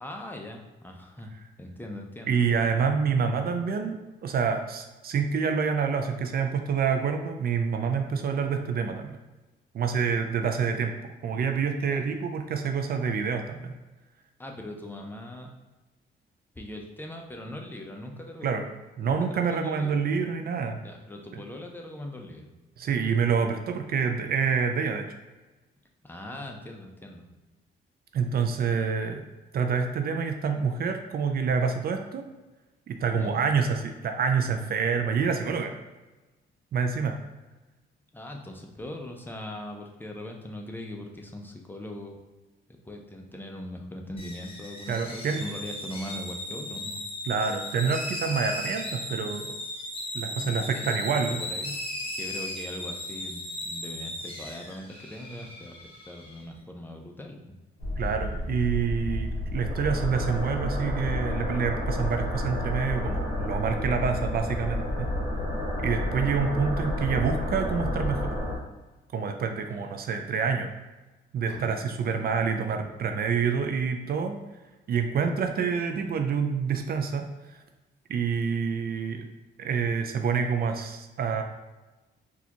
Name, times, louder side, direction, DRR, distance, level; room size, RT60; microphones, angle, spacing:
voice 1, 0.0-1.3 1.6-2.4 11.9-12.0 14.4-15.5 16.6-18.5 19.0-19.9 20.8-22.5 26.0-27.3 33.1-33.4 38.1-42.2 42.7-47.0 50.3-51.0 51.3-57.6 69.7-69.9 72.0-72.2, left 1 dB, 10° left, 2 dB, 0.6 m, -40 dB
voice 2, 2.3-9.2 9.7-10.9 11.2-13.7 18.4-18.7 19.0-20.8 22.8-25.1 28.1-29.2 29.5-32.2 32.9-35.8 36.7-37.2 44.9-45.5 47.2-49.5 50.1-51.4 58.0-65.1 65.8-68.4 69.1-70.7 71.3-74.4 74.9-77.6 78.1-79.3 79.6-81.4, right 6 dB, 50° right, 5 dB, 0.4 m, -27 dB
sound 1, 44.2-56.4, left 1 dB, 30° left, 0.9 m, -37 dB
sound 2, 57.8-68.6, left 1 dB, 50° left, 1.4 m, -30 dB
Bowed string instrument, 71.5-75.0, equal, 70° right, 1.1 m, -49 dB
4.1 x 2.4 x 2.9 m, 1.1 s
cardioid pair, 90°, 20 cm